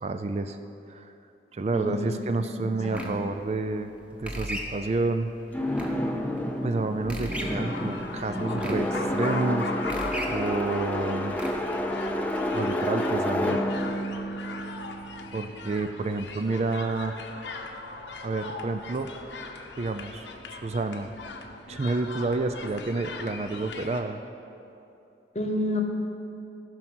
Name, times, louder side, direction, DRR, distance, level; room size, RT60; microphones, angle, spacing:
voice 1, 0.0-0.6 0.9-1.1 1.5-3.9 4.2-5.3 6.6-9.7 10.3-11.4 12.5-13.6 15.3-17.2 18.2-19.1 19.8-21.1 21.7-24.2, right 3 dB, 35° right, 8 dB, 0.4 m, -29 dB
voice 2, 1.7-2.5 2.8-3.1 25.3-25.8, left 1 dB, 35° left, 4 dB, 1.0 m, -30 dB
sound 1, 2.8-11.8, equal, 5° right, 1.0 m, -39 dB
sound 2, 5.5-15.5, left 1 dB, 10° left, 0.6 m, -30 dB
sound 3, 7.4-24.0, left 3 dB, 80° left, 1.0 m, -39 dB
15.0 x 6.0 x 6.2 m, 2.8 s
head